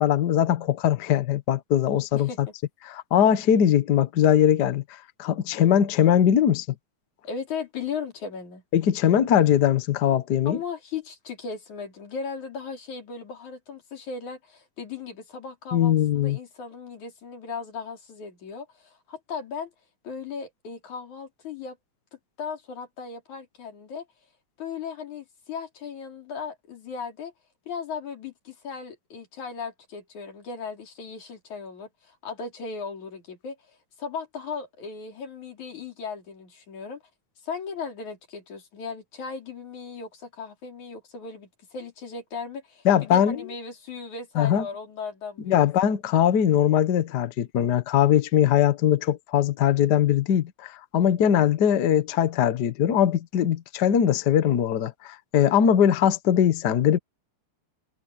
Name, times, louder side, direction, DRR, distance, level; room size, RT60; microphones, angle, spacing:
voice 1, 0.0-2.5 2.8-4.8 5.2-6.7 8.7-10.6 15.7-16.4 42.8-43.5 44.3-44.7 45.5-57.0, left 10 dB, 90° left, 0.9 m, -21 dB
voice 2, 2.1-2.5 7.2-8.6 10.5-19.7 20.0-21.8 22.4-24.1 24.6-27.3 27.7-33.6 34.0-37.0 37.4-45.9, left 5 dB, 70° left, 5.4 m, -37 dB
omnidirectional pair, 3.5 m